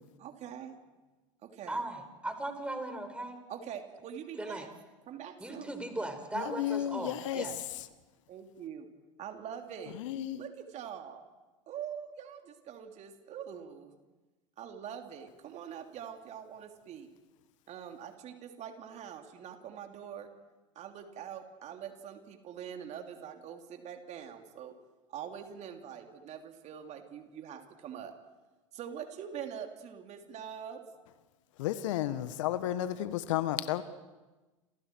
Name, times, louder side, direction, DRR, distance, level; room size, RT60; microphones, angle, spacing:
voice 1, 0.2-0.7 1.4-1.8 3.5-4.7 5.1-5.7 6.4-7.0 7.3-7.6 8.3-8.9 9.2-10.0 10.4-11.2 11.7-13.9 14.6-17.1 17.7-20.3 20.7-24.7 25.1-28.1 28.7-30.8, right 8 dB, 45° right, 4 dB, 3.1 m, -44 dB
voice 2, 1.7-3.4 4.4-4.7 5.4-7.5, right 1 dB, 5° right, 5 dB, 5.1 m, -38 dB
voice 3, 6.3-7.5 9.9-10.4 31.6-33.8, left 12 dB, 65° left, 13 dB, 1.4 m, -32 dB
29.5 x 27.5 x 4.7 m, 1.2 s
hypercardioid pair, 85°, 17 cm